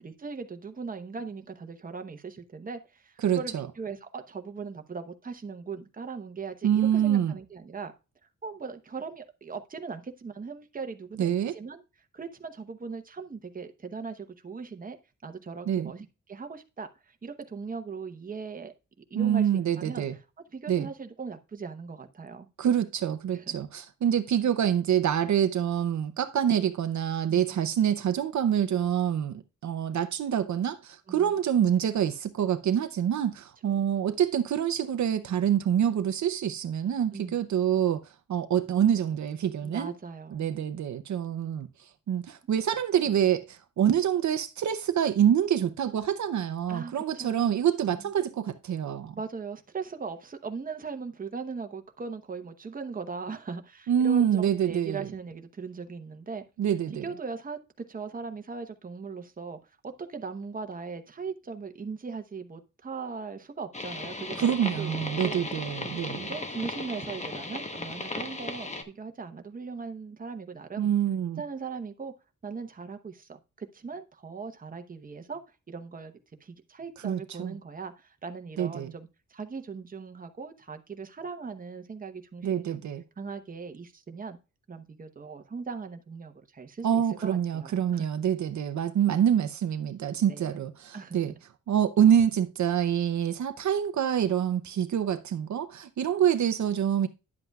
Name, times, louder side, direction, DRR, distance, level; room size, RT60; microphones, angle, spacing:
voice 1, 0.0-7.9 8.4-11.8 12.1-15.0 15.2-18.7 19.1-19.5 19.8-20.1 20.5-22.5 23.3-23.5 27.3-27.6 31.1-31.3 33.7-33.8 37.1-37.4 39.6-40.5 46.7-48.1 49.1-56.4 56.9-59.6 59.8-65.4 66.1-70.9 71.4-72.1 72.4-73.3 73.6-75.4 75.7-76.1 76.4-82.8 83.2-84.4 84.7-88.1 90.3-90.6 90.9-91.2, right 5 dB, 25° right, 0.9 m, -39 dB
voice 2, 3.2-3.7 6.6-7.3 11.2-11.5 15.7-15.9 19.1-20.2 20.7-20.9 22.6-39.9 40.3-49.2 53.9-55.1 56.6-57.1 64.4-66.3 70.8-71.4 77.0-77.6 78.6-78.9 82.4-83.0 86.8-91.3 91.7-97.1, right 9 dB, 65° right, 0.7 m, -26 dB
sound 1, 63.7-68.8, left 2 dB, 20° left, 1.0 m, -36 dB
10.5 x 7.8 x 2.3 m
wide cardioid pair, 140°, 31 cm